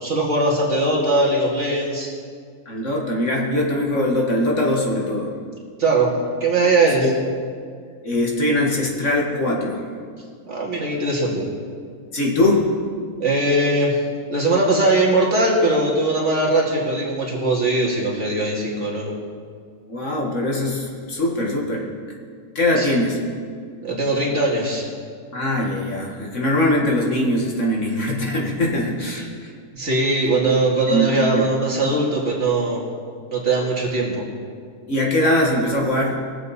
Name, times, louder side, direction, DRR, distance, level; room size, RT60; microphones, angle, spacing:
voice 1, 0.0-2.2 5.8-6.1 6.4-7.1 10.5-11.4 13.2-14.0 14.3-19.1 22.8-22.9 23.8-24.9 29.1-29.2 29.7-32.8 33.3-34.2, right 2 dB, 50° right, -3 dB, 2.5 m, -20 dB
voice 2, 2.7-5.3 7.0-7.1 8.0-9.8 12.1-12.7 19.9-21.9 22.6-23.2 25.3-29.5 30.9-31.5 34.9-36.2, left 1 dB, 50° left, -2 dB, 1.9 m, -21 dB
21.5 x 7.6 x 4.1 m, 2.1 s
omnidirectional pair, 1.6 m